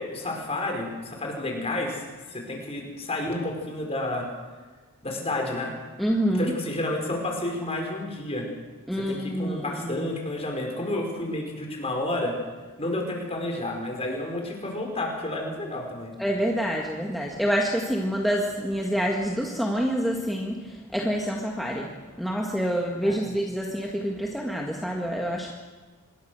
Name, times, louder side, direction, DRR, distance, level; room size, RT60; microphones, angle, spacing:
voice 1, 0.0-2.0 2.3-4.3 5.0-5.7 6.3-8.5 8.9-12.4 12.8-16.1 23.0-23.3, left 1 dB, 25° left, 1 dB, 5.1 m, -30 dB
voice 2, 6.0-6.5 8.9-10.1 16.2-25.5, equal, ahead, -1 dB, 1.8 m, -27 dB
26.0 x 21.0 x 6.5 m, 1.4 s
head